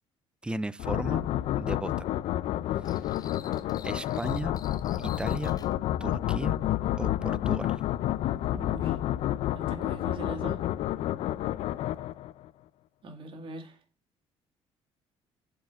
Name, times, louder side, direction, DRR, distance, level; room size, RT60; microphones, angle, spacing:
voice 1, 0.4-1.3 1.6-2.1 3.8-4.6 5.0-5.6 6.0-6.5 7.0-7.8, right 2 dB, 10° right, 0.4 m, -35 dB
sound 1, 0.8-12.5, left 13 dB, 65° left, 0.4 m, -30 dB
sound 2, 2.8-5.7, left 5 dB, 35° left, 0.9 m, -50 dB
voice 2, 8.4-9.0 9.5-10.6 13.0-13.8, right 2 dB, 50° right, 2.1 m, -41 dB
7.6 x 4.6 x 5.4 m
cardioid pair, 100°, 12 cm